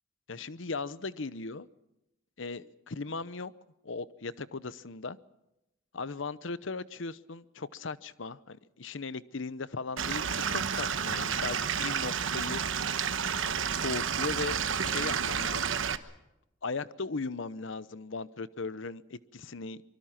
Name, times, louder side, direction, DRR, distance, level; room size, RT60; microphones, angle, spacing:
voice 1, 0.3-1.7 2.4-3.5 3.8-5.2 5.9-12.8 13.7-16.1 16.6-19.8, left 4 dB, 70° left, 16 dB, 0.9 m, -38 dB
Stream / Liquid, 10.0-16.0, right 7 dB, 80° right, 1.1 m, -30 dB
24.5 x 23.5 x 5.9 m, 0.91 s
head